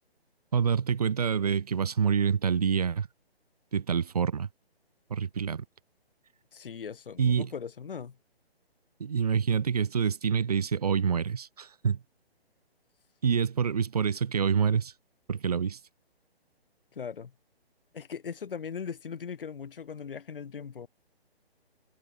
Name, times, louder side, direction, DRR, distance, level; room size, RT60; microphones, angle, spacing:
voice 1, 0.5-3.1 3.7-4.5 5.1-5.6 7.2-7.5 9.0-12.0 13.2-14.9 15.3-15.8, right 7 dB, 40° right, 0.4 m, -27 dB
voice 2, 6.5-8.2 16.9-17.3 17.9-20.9, left 6 dB, 55° left, 3.3 m, -39 dB
figure-of-eight pair, 150°, 32 cm